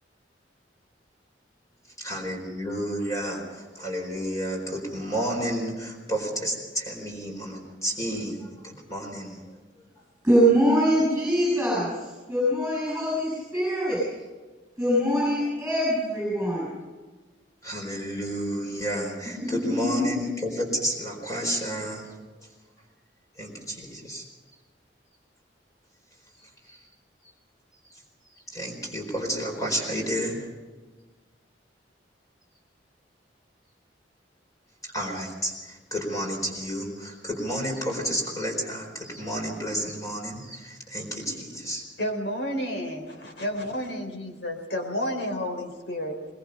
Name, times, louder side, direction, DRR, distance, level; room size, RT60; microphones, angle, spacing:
voice 1, 2.0-9.4 17.6-22.2 23.4-24.2 26.4-26.8 27.9-28.0 28.5-30.4 34.8-41.8, equal, 20° left, 1 dB, 4.4 m, -31 dB
voice 2, 10.2-14.0 14.8-16.7 19.4-20.1, equal, 5° right, -5 dB, 7.5 m, -23 dB
voice 3, 42.0-46.2, equal, 80° left, 3 dB, 4.1 m, -31 dB
22.0 x 21.5 x 5.5 m, 1.3 s
head